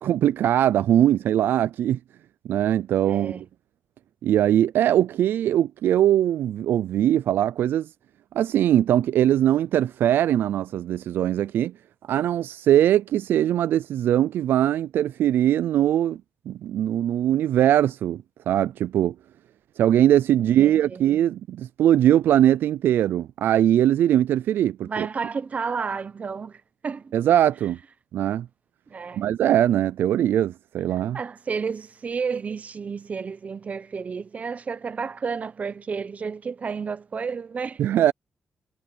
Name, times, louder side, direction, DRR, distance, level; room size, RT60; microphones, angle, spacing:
voice 1, 0.0-2.0 2.5-3.4 4.2-7.9 8.3-11.7 12.1-16.2 16.5-19.1 19.8-25.1 27.1-27.8 28.1-28.5 29.2-31.2 37.8-38.1, right 11 dB, 85° right, 0.3 m, -21 dB
voice 2, 3.0-3.5 20.4-21.0 24.8-27.1 28.9-29.2 31.1-37.8, right 5 dB, 45° right, 1.0 m, -31 dB
cardioid pair, 90°, 3 cm